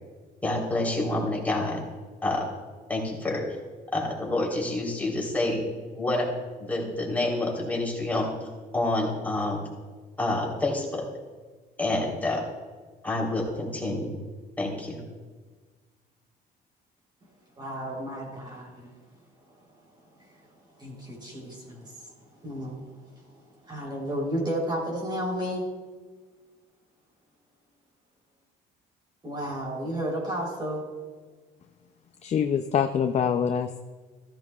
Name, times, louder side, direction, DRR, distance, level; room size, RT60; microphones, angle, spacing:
voice 1, 0.4-1.8 2.2-2.5 2.9-3.4 3.9-5.7 6.0-6.3 6.6-8.3 8.7-9.6 10.2-11.0 11.8-12.4 13.0-14.2 14.6-15.0, left 2 dB, 10° left, -3 dB, 3.7 m, -28 dB
voice 2, 17.6-18.9 19.5-19.6 19.9-20.5 20.8-22.1 22.4-25.7 29.2-30.9, equal, 25° right, -2 dB, 3.7 m, -33 dB
voice 3, 32.2-33.8, left 7 dB, 40° left, 7 dB, 0.5 m, -25 dB
14.5 x 13.5 x 2.4 m, 1.4 s
cardioid pair, 110°, 17 cm